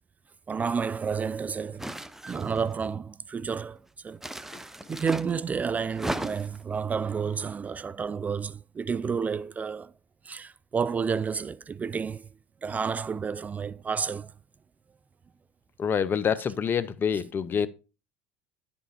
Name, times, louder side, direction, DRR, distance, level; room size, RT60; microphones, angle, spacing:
voice 1, 0.5-1.9 2.3-4.2 4.5-4.6 4.9-9.9 10.2-12.3 12.6-14.3, right 6 dB, 25° right, 0.4 m, -30 dB
sound 1, 1.8-2.7 4.2-5.3 5.9-6.6, right 1 dB, 5° right, 0.8 m, -35 dB
voice 2, 15.8-17.7, left 7 dB, 35° left, 0.8 m, -26 dB
10.5 x 5.5 x 4.3 m
hypercardioid pair, 75°, 6 cm